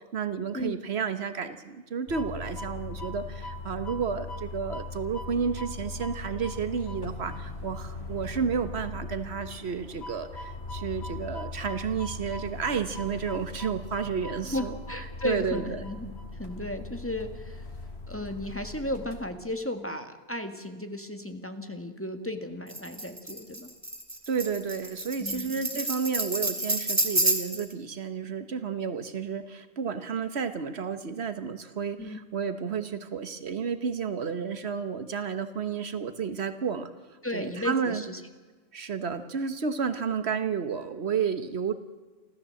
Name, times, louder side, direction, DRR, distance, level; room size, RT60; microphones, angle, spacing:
voice 1, 0.0-14.8 15.2-15.8 24.3-38.0 38.7-41.7, right 6 dB, 80° right, 10 dB, 1.4 m, -31 dB
sound 1, 2.1-19.6, left 2 dB, 80° left, 3.0 m, -39 dB
voice 2, 14.4-17.6 18.1-23.7 25.2-25.5 32.0-32.2 37.2-38.2, left 1 dB, 10° left, 6 dB, 1.7 m, -35 dB
Tambourine, 22.7-27.7, right 1 dB, 15° right, 1.7 m, -29 dB
29.5 x 14.0 x 7.7 m, 1.4 s
omnidirectional pair, 1.1 m